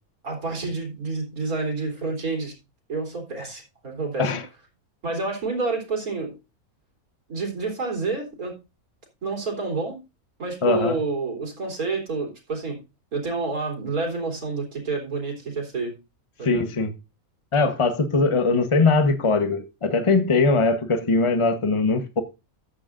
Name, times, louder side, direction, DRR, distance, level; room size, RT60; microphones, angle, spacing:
voice 1, 0.2-2.5 2.9-4.3 5.0-6.3 7.3-8.5 9.2-10.0 10.4-12.8 13.1-15.9 16.4-16.6, right 3 dB, 80° right, 4.3 m, -28 dB
voice 2, 10.6-11.0 16.4-16.9 17.5-22.2, left 3 dB, 25° left, 1.1 m, -21 dB
14.0 x 9.8 x 2.6 m
omnidirectional pair, 1.5 m